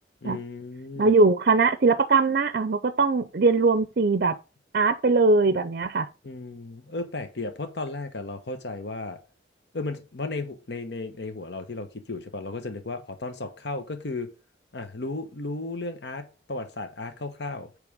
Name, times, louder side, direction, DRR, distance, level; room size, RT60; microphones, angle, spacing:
voice 1, 0.2-1.1 6.2-9.2 9.7-14.3 14.7-17.7, left 2 dB, 70° left, 1.0 m, -34 dB
voice 2, 1.0-4.4 4.7-6.1, right 3 dB, 55° right, 0.5 m, -21 dB
8.6 x 3.4 x 4.6 m
head